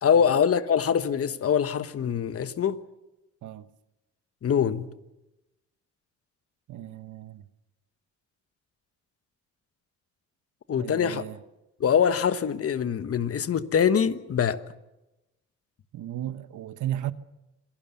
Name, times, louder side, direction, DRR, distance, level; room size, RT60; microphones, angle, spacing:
voice 1, 0.0-2.8 4.4-4.9 10.7-11.3 11.8-14.6, left 7 dB, 50° left, 1.3 m, -24 dB
voice 2, 6.7-7.4 10.8-11.4 15.9-17.1, right 12 dB, 75° right, 1.2 m, -35 dB
26.5 x 18.0 x 7.0 m
cardioid pair, 90°, 30 cm